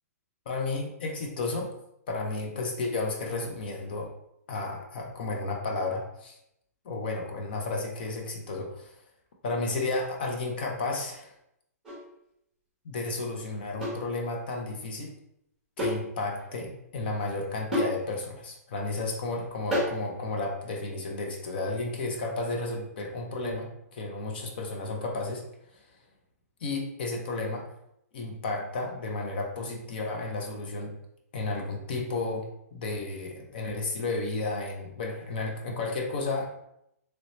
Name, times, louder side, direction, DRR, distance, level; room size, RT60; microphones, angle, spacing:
voice 1, 0.5-1.7 2.1-4.1 4.5-6.4 6.8-8.9 9.4-11.3 12.8-15.1 15.8-25.4 26.6-27.7 28.1-31.0 31.3-36.5, left 3 dB, 35° left, 1 dB, 0.5 m, -32 dB
sound 1, 11.8-12.1 13.8-14.1 15.8-16.1 16.4-16.5 17.7-18.0 19.7-20.0, equal, 5° right, 0.8 m, -29 dB
3.1 x 2.7 x 2.9 m, 0.78 s
hypercardioid pair, 175°, 9 cm